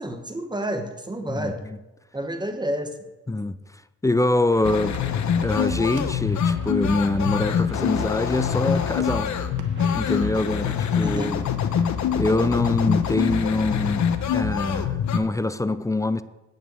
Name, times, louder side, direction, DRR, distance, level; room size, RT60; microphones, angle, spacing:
voice 1, 0.0-1.6 2.1-3.0 11.0-11.4, right 1 dB, 15° right, 1.2 m, -29 dB
voice 2, 1.3-1.8 3.3-3.6 4.0-5.0 5.4-9.3 9.9-11.4 12.1-14.1 14.3-16.2, left 2 dB, 10° left, 0.4 m, -24 dB
sound 1, 4.5-10.6, right 2 dB, 40° right, 2.7 m, -47 dB
sound 2, 4.6-15.2, left 7 dB, 70° left, 1.0 m, -25 dB
sound 3, 4.9-5.1 5.9-6.1 7.0-7.2 7.9-8.3 9.0-9.2 9.5-9.7 10.7-10.8 11.7-11.9, right 6 dB, 90° right, 1.1 m, -44 dB
8.9 x 5.5 x 7.6 m
cardioid pair, 90°, 30 cm